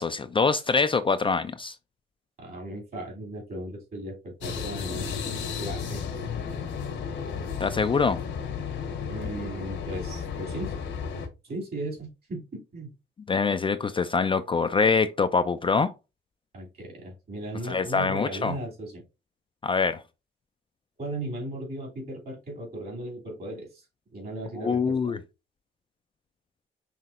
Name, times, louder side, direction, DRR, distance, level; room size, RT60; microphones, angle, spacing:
voice 1, 0.0-1.8 7.6-8.2 13.3-15.9 17.7-18.5 19.6-20.0 24.6-25.2, left 5 dB, 25° left, 0.4 m, -24 dB
voice 2, 2.4-5.2 5.6-6.1 9.1-10.8 11.4-12.9 16.5-19.0 21.0-23.8 24.1-25.2, right 1 dB, 50° right, 2.6 m, -37 dB
sound 1, 4.4-11.3, left 6 dB, 65° left, 1.0 m, -33 dB
5.8 x 2.8 x 2.4 m
cardioid pair, 90°, 20 cm